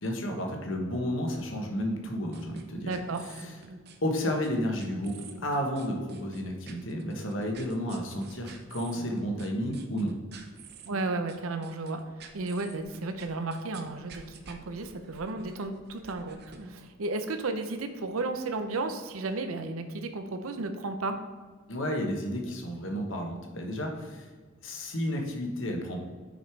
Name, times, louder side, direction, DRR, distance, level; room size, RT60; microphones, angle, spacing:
voice 1, 0.0-2.9 3.2-3.5 4.0-10.1 21.7-24.3 24.6-26.0, equal, 65° left, 2 dB, 1.2 m, -32 dB
sound 1, 2.3-16.7, right 4 dB, 50° right, 0.6 m, -49 dB
voice 2, 2.8-3.2 10.9-12.0 12.3-21.2, right 3 dB, 90° right, 7 dB, 0.7 m, -33 dB
6.3 x 5.3 x 4.6 m, 1.5 s
head